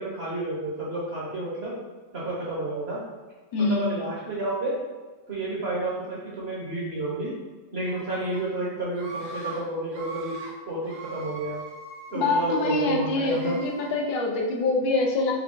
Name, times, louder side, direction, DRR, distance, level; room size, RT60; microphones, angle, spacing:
voice 1, 0.0-1.7 2.1-3.0 3.6-4.8 5.3-7.3 7.7-10.4 10.7-11.6 12.1-13.6, right 1 dB, 45° right, -6 dB, 0.9 m, -30 dB
voice 2, 3.5-3.9 12.1-15.3, left 2 dB, 90° left, 0 dB, 1.4 m, -25 dB
Screaming, 7.8-8.4 8.9-9.6 9.9-10.5 10.8-12.7 13.2-13.9, right 3 dB, 65° right, 1.3 m, -40 dB
4.8 x 2.2 x 3.7 m, 1.3 s
omnidirectional pair, 1.9 m